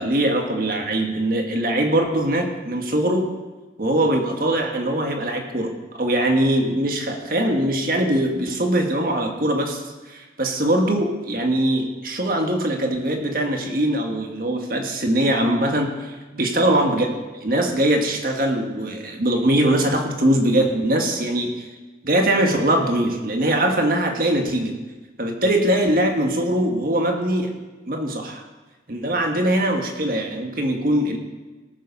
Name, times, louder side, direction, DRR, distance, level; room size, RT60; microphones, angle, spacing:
voice 1, 0.0-3.3 3.8-9.8 10.1-17.1 17.4-21.7 22.0-24.8 25.2-27.5 27.9-28.4 28.9-31.2, right 1 dB, 50° right, 3 dB, 1.6 m, -22 dB
18.0 x 7.2 x 5.4 m, 1.2 s
head